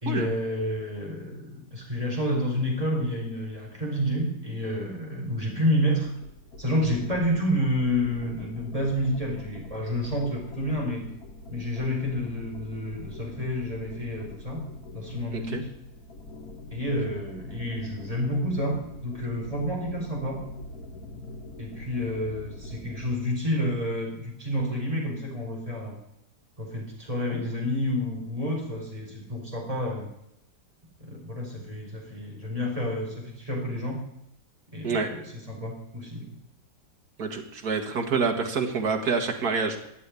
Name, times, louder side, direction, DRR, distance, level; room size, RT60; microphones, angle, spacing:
voice 1, 0.0-6.1 6.6-11.0 11.5-14.6 14.9-15.7 16.7-20.4 21.6-26.0 26.6-30.1 31.1-34.1 34.7-36.3, equal, 20° right, -2 dB, 4.6 m, -29 dB
sound 1, 6.1-23.3, left 2 dB, 60° left, 2.0 m, -43 dB
voice 2, 37.2-39.9, right 4 dB, 60° right, 3 dB, 2.4 m, -27 dB
12.5 x 8.7 x 9.8 m, 0.79 s
omnidirectional pair, 1.8 m